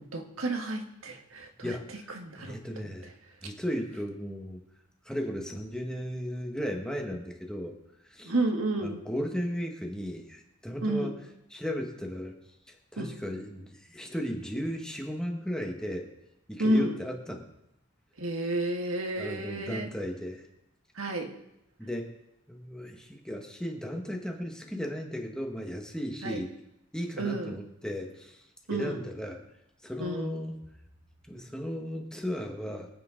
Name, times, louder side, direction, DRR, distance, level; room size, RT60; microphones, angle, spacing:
voice 1, 0.0-1.8 2.1-2.6 8.3-9.0 10.8-11.1 13.0-13.2 16.6-16.9 18.2-19.9 21.0-21.3 26.2-26.4 27.2-27.6 28.7-29.0 30.0-30.3, right 1 dB, 90° right, 4 dB, 1.7 m, -31 dB
voice 2, 1.6-1.9 2.4-3.1 3.4-4.6 5.1-7.8 8.1-8.3 8.8-11.1 11.5-12.3 12.7-16.1 16.5-17.4 19.2-20.5 21.8-22.1 22.5-26.5 26.9-28.4 28.7-29.4 29.8-30.6 31.3-32.9, equal, 5° left, 2 dB, 1.6 m, -35 dB
23.5 x 8.9 x 3.9 m, 0.85 s
head